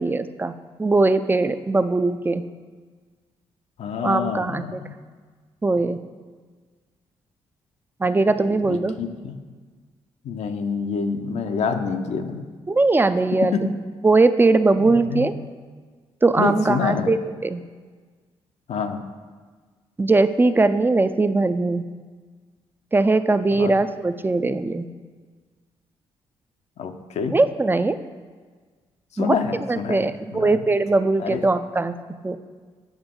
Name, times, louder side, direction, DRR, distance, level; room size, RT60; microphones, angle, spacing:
voice 1, 0.0-2.4 4.0-4.8 5.6-6.0 8.0-9.0 12.7-13.5 14.0-15.3 16.2-17.6 20.0-21.8 22.9-24.9 27.3-28.0 29.2-29.4 29.7-32.0 32.2-32.4, right 3 dB, 15° right, 11 dB, 0.4 m, -20 dB
voice 2, 3.8-4.9 8.5-9.4 10.2-12.5 13.3-13.7 14.8-15.3 16.4-17.1 18.7-19.0 23.6-23.7 26.8-27.4 29.1-30.6 31.2-31.4, left 6 dB, 65° left, 6 dB, 0.6 m, -27 dB
8.0 x 5.9 x 3.7 m, 1.5 s
supercardioid pair, 55°, 12 cm